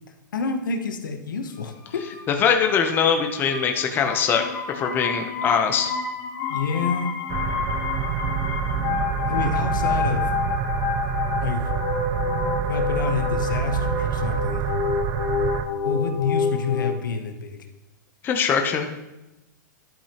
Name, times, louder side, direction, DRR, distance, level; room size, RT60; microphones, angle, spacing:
voice 1, 0.3-2.0 6.5-7.1 9.3-10.3 11.4-11.7 12.7-14.7 15.8-17.7, left 5 dB, 90° left, 7 dB, 0.9 m, -28 dB
sound 1, 1.8-16.9, left 5 dB, 40° left, 1.0 m, -29 dB
voice 2, 2.3-5.9 18.2-18.9, left 6 dB, 20° left, 5 dB, 0.7 m, -22 dB
sound 2, 7.3-15.7, right 8 dB, 30° right, 0.5 m, -27 dB
11.5 x 5.3 x 2.9 m, 0.99 s
hypercardioid pair, 145°, 10 cm